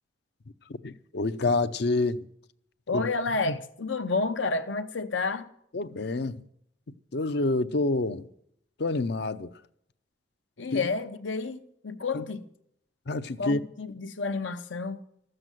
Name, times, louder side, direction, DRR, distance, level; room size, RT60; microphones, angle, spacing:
voice 1, 0.8-2.2 2.9-3.1 3.5-3.6 5.7-6.4 7.1-8.3 8.8-9.5 10.7-10.9 12.1-12.2 13.1-13.6, left 2 dB, 60° left, 0.6 m, -27 dB
voice 2, 2.9-5.5 10.6-12.4 13.4-15.0, left 3 dB, 85° left, 0.9 m, -30 dB
13.0 x 7.8 x 9.1 m
head